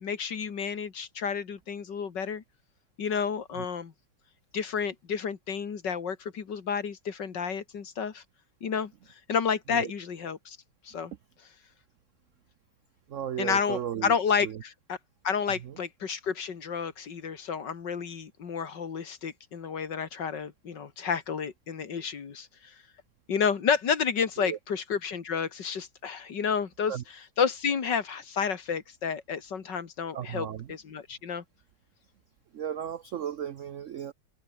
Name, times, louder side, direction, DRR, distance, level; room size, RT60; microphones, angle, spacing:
voice 1, 0.0-2.4 3.0-3.9 4.5-8.2 8.6-8.9 9.3-10.6 10.8-11.1 13.4-15.0 15.2-22.7 23.3-31.4, left 6 dB, 60° left, 2.5 m, -31 dB
voice 2, 13.1-14.1 14.4-14.6 15.6-15.7 24.4-24.6 26.9-27.0 30.1-30.7 32.5-34.1, right 9 dB, 75° right, 0.7 m, -35 dB
omnidirectional pair, 2.2 m